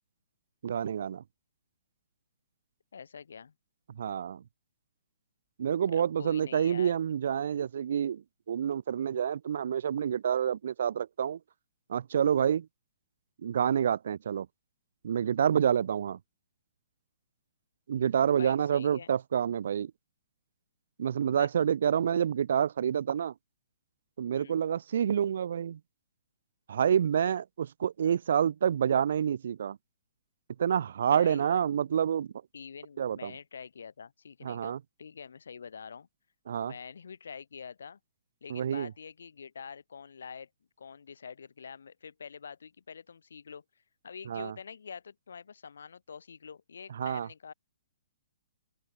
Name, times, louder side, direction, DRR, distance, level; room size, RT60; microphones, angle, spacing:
voice 1, 0.6-1.2 4.0-4.4 5.6-11.4 11.9-12.7 13.4-14.5 15.0-16.2 17.9-19.9 21.0-23.3 24.2-25.8 26.7-29.8 30.6-32.3 33.0-33.3 34.4-34.8 36.5-36.7 38.5-38.9 44.3-44.5 46.9-47.3, right 8 dB, 65° right, 0.4 m, -28 dB
voice 2, 2.9-3.5 5.9-6.9 18.3-19.1 21.3-21.5 24.3-24.6 31.0-31.4 32.5-36.1 36.6-38.0 38.4-40.5 40.8-43.6 44.0-47.5, left 6 dB, 75° left, 3.2 m, -46 dB
hypercardioid pair, 135°, 0 cm